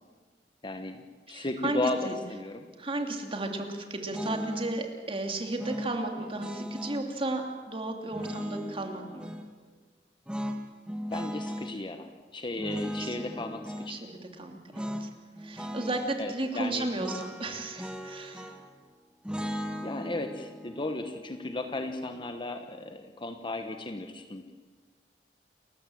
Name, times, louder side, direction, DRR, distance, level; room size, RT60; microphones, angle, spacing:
voice 1, 0.6-1.0 1.3-2.0 2.3-2.7 11.1-14.0 16.2-16.9 19.8-24.5, left 2 dB, 30° left, 6 dB, 1.2 m, -35 dB
voice 2, 1.3-2.2 2.8-9.3 13.0-13.4 13.9-15.1 15.4-18.6, right 2 dB, 30° right, 3 dB, 2.7 m, -34 dB
sound 1, 4.1-4.8 5.6-7.1 8.1-9.5 10.3-11.7 12.6-13.9 14.7-15.1 15.4-16.2 17.0-18.7 19.2-22.3, equal, 5° right, 1.5 m, -37 dB
29.5 x 14.5 x 7.7 m, 1.4 s
head